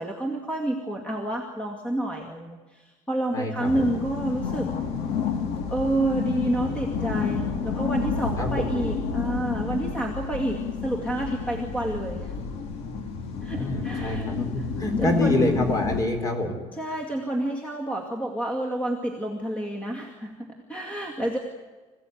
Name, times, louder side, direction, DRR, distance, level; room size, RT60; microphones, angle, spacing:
voice 1, 0.0-4.7 5.7-12.3 13.4-14.3 15.0-15.5 16.7-21.4, right 1 dB, 10° left, 1 dB, 2.2 m, -29 dB
voice 2, 3.3-3.9 8.4-8.7 13.6-16.6, left 2 dB, 30° left, 5 dB, 3.9 m, -26 dB
sound 1, 3.6-16.0, left 5 dB, 60° left, 2.6 m, -30 dB
26.5 x 16.0 x 9.3 m, 1.3 s
cardioid pair, 175°, 12 cm